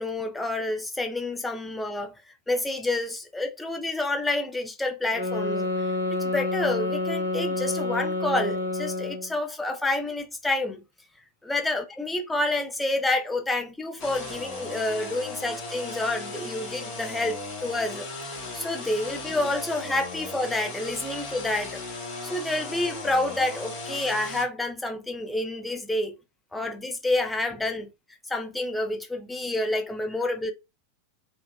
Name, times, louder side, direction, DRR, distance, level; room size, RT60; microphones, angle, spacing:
voice 1, 0.0-2.1 2.5-5.7 6.1-10.8 11.4-18.1 18.5-21.8 22.2-26.1 26.5-27.9 28.3-30.5, left 2 dB, 5° left, 0.5 m, -28 dB
sound 1, 5.1-9.3, left 2 dB, 90° left, 0.9 m, -28 dB
sound 2, 14.0-24.4, left 2 dB, 40° left, 1.0 m, -37 dB
2.7 x 2.1 x 2.2 m
figure-of-eight pair, 90°, 0 cm